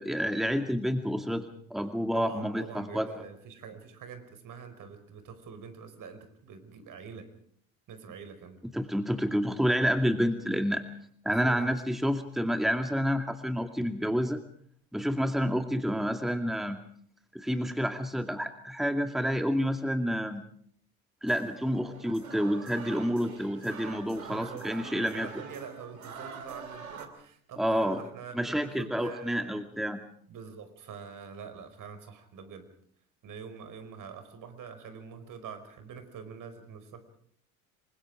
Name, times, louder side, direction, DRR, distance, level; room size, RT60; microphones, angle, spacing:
voice 1, 0.0-3.1 8.7-10.8 11.2-14.4 14.9-16.8 17.3-20.4 21.2-25.3 27.6-28.0 28.3-30.0, equal, ahead, 6 dB, 2.2 m, -29 dB
voice 2, 2.1-7.3 7.9-8.6 11.3-11.6 24.2-29.6 30.3-32.7 33.2-37.1, right 6 dB, 50° right, 10 dB, 5.2 m, -45 dB
sound 1, 21.3-27.1, right 5 dB, 85° right, 2.7 m, -45 dB
27.0 x 25.0 x 4.9 m, 0.62 s
hypercardioid pair, 65°, 41 cm